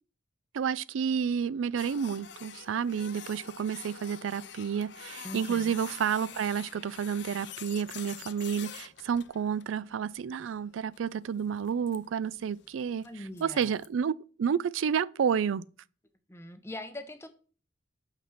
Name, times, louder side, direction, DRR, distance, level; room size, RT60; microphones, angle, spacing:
voice 1, 0.5-13.1 13.4-14.1 14.4-15.6, right 7 dB, 85° right, 0.4 m, -30 dB
Printer, 1.8-13.9, left 9 dB, 65° left, 0.5 m, -47 dB
voice 2, 5.2-5.8 13.0-13.7 16.3-17.3, left 1 dB, 15° left, 0.7 m, -42 dB
6.0 x 5.9 x 5.6 m
head